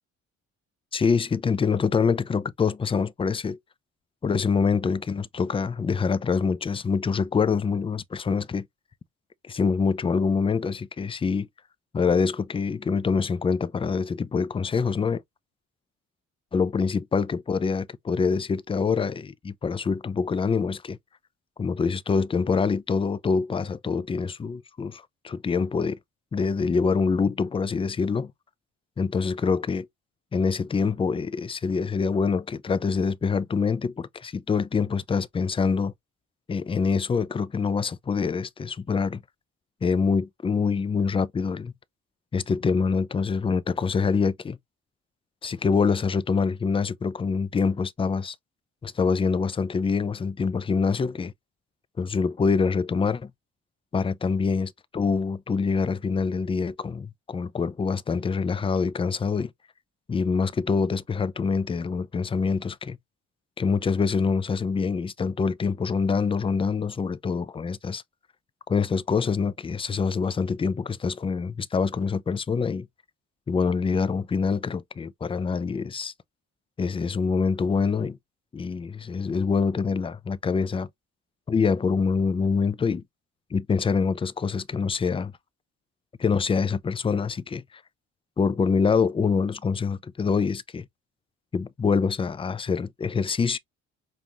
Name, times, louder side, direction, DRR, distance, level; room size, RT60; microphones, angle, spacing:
voice 1, 0.9-3.6 4.2-8.7 9.4-11.5 11.9-15.2 16.5-21.0 21.6-26.0 26.3-28.3 29.0-29.9 30.3-35.9 36.5-39.2 39.8-41.7 42.3-44.6 45.4-48.3 48.8-51.3 52.0-53.3 53.9-59.5 60.1-63.0 63.6-68.0 68.7-72.9 73.5-76.1 76.8-78.2 78.5-80.9 81.5-83.0 83.5-85.3 86.2-87.6 88.4-90.8 91.5-93.6, left 5 dB, 20° left, 0.4 m, -25 dB
5.3 x 2.3 x 2.9 m
cardioid pair, 90°, 30 cm